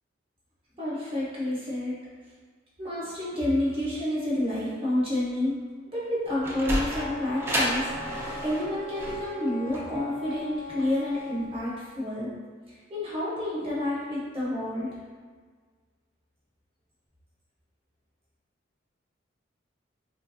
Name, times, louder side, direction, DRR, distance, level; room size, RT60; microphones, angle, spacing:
voice 1, 0.8-2.0 2.8-5.5 5.9-7.9 8.2-12.3 12.7-14.9, left 1 dB, 30° right, -8 dB, 0.8 m, -29 dB
Sliding door, 6.1-11.3, right 1 dB, 15° right, 0.4 m, -32 dB
Wind instrument woodwind instrument, 6.9-11.5, left 2 dB, 30° left, 0.9 m, -40 dB
3.3 x 2.5 x 2.3 m, 1.6 s
head